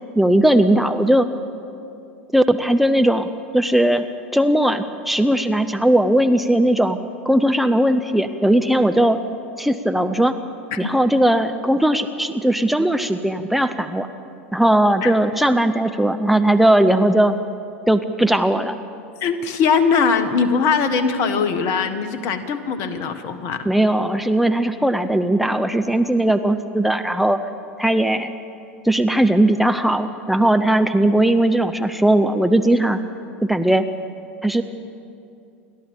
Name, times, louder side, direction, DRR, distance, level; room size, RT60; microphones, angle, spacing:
voice 1, 0.2-1.3 2.3-3.3 3.5-4.1 4.3-7.0 7.2-9.2 9.6-10.3 10.8-14.1 14.5-17.4 17.9-18.7 23.6-27.4 27.8-28.3 28.8-33.0 33.4-33.9 34.4-34.6, right 1 dB, ahead, 8 dB, 0.8 m, -18 dB
voice 2, 19.2-23.7, left 5 dB, 50° left, 9 dB, 1.7 m, -21 dB
30.0 x 12.0 x 7.2 m, 2.6 s
hypercardioid pair, 80°, 7 cm